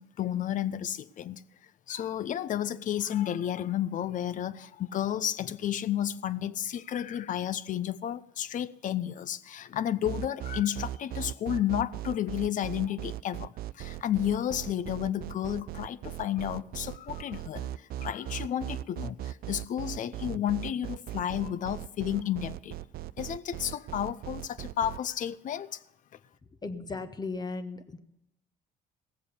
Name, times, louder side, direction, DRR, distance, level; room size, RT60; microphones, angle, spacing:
voice 1, 0.0-1.4 1.9-22.8 23.2-25.8, left 11 dB, 50° left, 0.6 m, -32 dB
sound 1, 10.0-25.0, right 14 dB, 60° right, 0.4 m, -38 dB
voice 2, 26.6-28.0, left 3 dB, 25° left, 1.1 m, -36 dB
16.5 x 7.6 x 6.7 m
cardioid pair, 110°, 17 cm